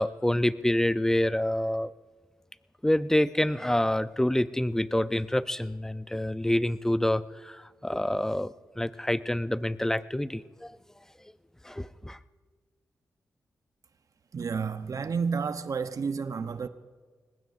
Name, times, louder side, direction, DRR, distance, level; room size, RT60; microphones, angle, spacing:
voice 1, 0.0-1.9 2.8-10.8 11.6-12.2, left 1 dB, 5° left, 0.6 m, -27 dB
voice 2, 14.3-16.7, right 5 dB, 60° right, 0.9 m, -30 dB
23.0 x 20.5 x 2.6 m
cardioid pair, 55°, 6 cm